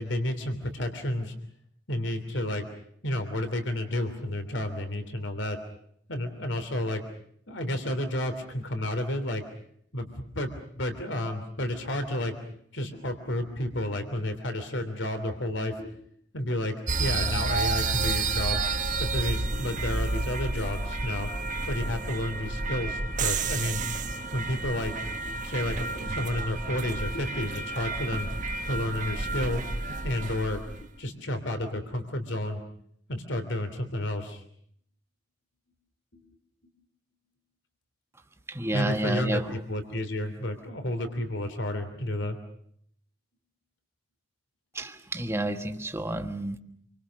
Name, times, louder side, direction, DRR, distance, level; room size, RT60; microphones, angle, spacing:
voice 1, 0.0-1.3 1.9-2.7 3.0-5.6 6.1-7.0 7.5-9.4 9.9-10.5 10.7-12.4 12.7-16.0 16.3-18.6 19.0-21.3 21.7-23.8 24.3-28.3 28.6-29.6 30.0-30.6 31.0-32.6 33.1-34.4 38.7-39.4 39.7-42.4, left 1 dB, 75° left, 3.1 m, -31 dB
sound 1, 16.9-30.8, right 3 dB, 40° right, 1.3 m, -30 dB
voice 2, 38.5-39.6 44.7-46.6, right 1 dB, 15° right, 1.4 m, -30 dB
27.5 x 24.5 x 6.4 m
head